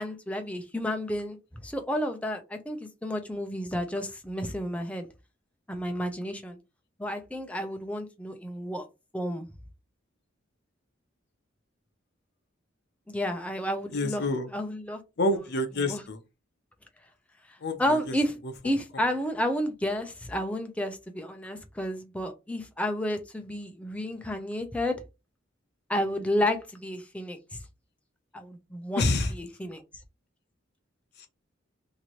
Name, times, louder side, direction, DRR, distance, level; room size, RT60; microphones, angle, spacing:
voice 1, 0.0-5.1 5.7-6.6 7.0-8.9 9.1-9.5 13.1-14.2 14.5-15.0 15.8-16.0 17.5-18.3 18.6-25.0 25.9-27.6 28.3-29.8, equal, 5° left, 0.5 m, -31 dB
voice 2, 13.9-14.5 15.2-16.2 17.6-18.6 18.9-19.0 29.0-29.3 31.2-31.3, left 2 dB, 55° left, 0.6 m, -28 dB
2.9 x 2.6 x 2.9 m
head